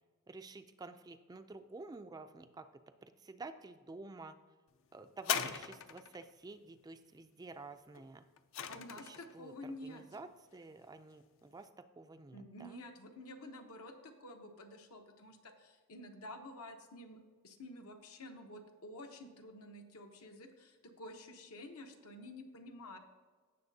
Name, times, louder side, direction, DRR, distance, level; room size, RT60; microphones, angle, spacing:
voice 1, 0.3-2.7 3.0-4.4 4.9-8.3 9.0-12.8, right 3 dB, 15° right, 9 dB, 0.3 m, -50 dB
sound 1, 5.2-6.2 8.0-9.3 10.1-10.2, left 8 dB, 60° left, 0.5 m, -39 dB
voice 2, 8.7-10.0 12.3-23.0, left 1 dB, 75° left, 4 dB, 1.0 m, -50 dB
16.5 x 6.6 x 2.7 m, 1.5 s
head